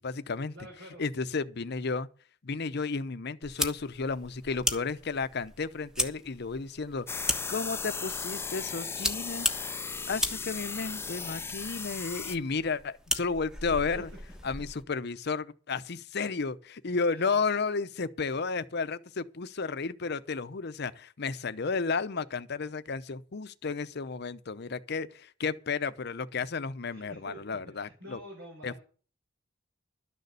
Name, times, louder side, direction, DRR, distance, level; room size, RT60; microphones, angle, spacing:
voice 1, 0.0-0.5 1.0-2.1 2.4-9.5 10.1-14.1 14.4-28.2 28.6-28.8, left 4 dB, 55° left, 0.7 m, -33 dB
voice 2, 0.5-1.0 14.0-14.1 17.1-17.2 26.9-28.8, equal, 70° right, 4.3 m, -47 dB
sound 1, 3.4-14.8, equal, 5° right, 1.2 m, -37 dB
sound 2, 7.1-12.4, left 5 dB, 10° left, 0.5 m, -36 dB
12.5 x 6.7 x 8.1 m
head